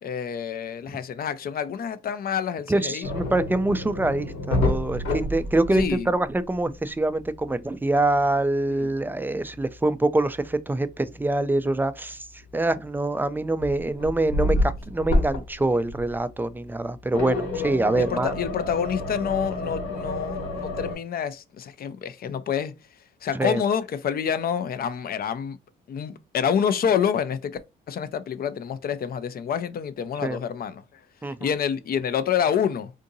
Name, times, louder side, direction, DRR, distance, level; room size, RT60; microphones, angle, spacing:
voice 1, 0.0-3.1 5.7-6.1 8.8-8.9 17.5-17.7 17.9-22.7 23.2-25.6 25.9-27.6 27.9-30.8 31.4-32.9, left 8 dB, 50° left, 0.5 m, -27 dB
voice 2, 2.7-12.2 12.5-18.3 23.3-23.6 30.2-30.4 31.2-31.4, right 2 dB, 10° right, 0.3 m, -25 dB
sound 1, 3.0-6.3 6.5-6.8 10.2-10.3 12.6-13.1 13.6-15.6 15.9-16.2 17.1-20.9, left 1 dB, 80° left, 1.3 m, -28 dB
3.8 x 2.6 x 2.7 m
cardioid pair, 90°, 20 cm